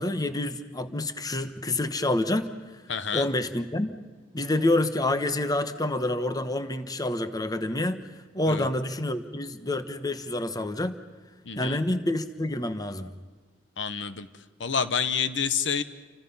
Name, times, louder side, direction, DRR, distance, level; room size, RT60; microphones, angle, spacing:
voice 1, 0.0-2.5 3.1-4.0 4.3-8.0 8.3-11.0 11.6-13.1, left 1 dB, 20° left, 10 dB, 1.1 m, -28 dB
voice 2, 2.9-3.3 8.5-8.7 11.5-11.8 13.8-14.3 14.6-15.8, left 6 dB, 85° left, 12 dB, 1.1 m, -28 dB
29.5 x 25.0 x 5.6 m, 1.3 s
head